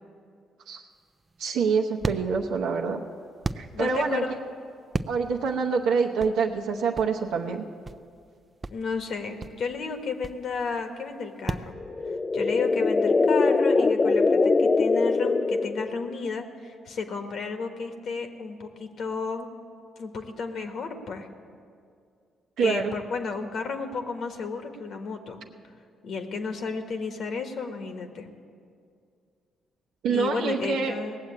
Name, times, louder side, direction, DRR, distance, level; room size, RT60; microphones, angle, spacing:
sound 1, 0.9-11.7, right 3 dB, 25° right, 0.5 m, -36 dB
voice 1, 1.4-3.0 3.5-4.2 5.1-7.6 22.6-22.9 30.0-30.9, right 5 dB, 85° right, 0 dB, 0.8 m, -26 dB
voice 2, 3.7-4.3 8.7-11.7 12.3-19.5 20.0-21.3 22.6-25.4 26.0-28.3 30.1-31.2, left 5 dB, 65° left, 6 dB, 1.4 m, -32 dB
sound 2, 11.8-16.2, left 3 dB, 30° left, 0.3 m, -22 dB
18.0 x 7.6 x 8.7 m, 2.3 s
cardioid pair, 90°, 0 cm